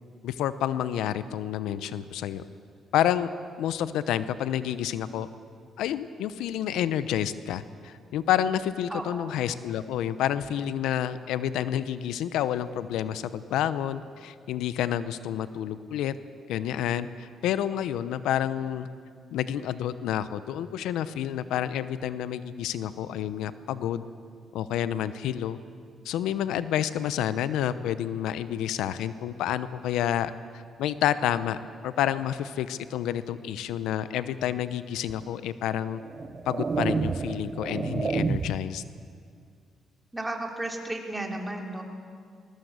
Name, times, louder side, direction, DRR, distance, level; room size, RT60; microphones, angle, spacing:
voice 1, 0.2-2.4 2.9-3.3 3.6-5.3 5.8-16.1 16.5-18.9 19.3-24.0 24.5-25.6 26.0-31.6 31.8-36.0 36.5-38.8, left 10 dB, 90° left, 13 dB, 0.8 m, -29 dB
voice 2, 8.9-9.4 40.1-41.8, right 1 dB, 10° right, 2 dB, 3.6 m, -34 dB
sound 1, 35.1-35.2 36.0-38.8, right 4 dB, 35° right, 0.8 m, -29 dB
21.5 x 21.0 x 8.1 m, 2.2 s
cardioid pair, 90°, 0 cm